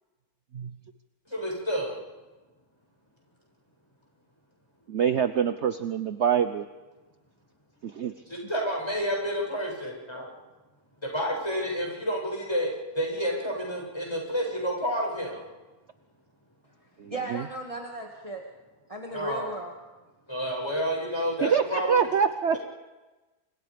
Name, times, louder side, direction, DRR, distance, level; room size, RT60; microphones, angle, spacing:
voice 1, 1.3-2.0 8.3-10.3 11.1-12.7 13.0-15.4 19.1-19.5 20.3-22.0, equal, 15° left, -1 dB, 7.7 m, -29 dB
voice 2, 4.9-6.7 7.8-8.1 17.0-17.4 21.4-22.6, right 7 dB, 50° right, 9 dB, 1.1 m, -25 dB
voice 3, 17.1-18.5 18.9-19.8, right 1 dB, 20° right, 0 dB, 2.1 m, -35 dB
29.5 x 25.5 x 5.2 m, 1.1 s
omnidirectional pair, 1.6 m